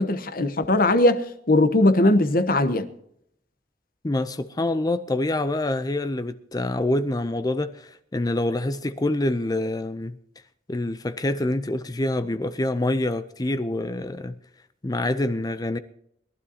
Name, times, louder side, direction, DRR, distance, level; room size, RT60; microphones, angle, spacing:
voice 1, 0.0-2.9, left 1 dB, 50° left, 1.1 m, -20 dB
voice 2, 4.0-10.2 10.7-14.4 14.8-15.8, left 1 dB, 20° left, 0.5 m, -26 dB
21.5 x 12.5 x 2.8 m
head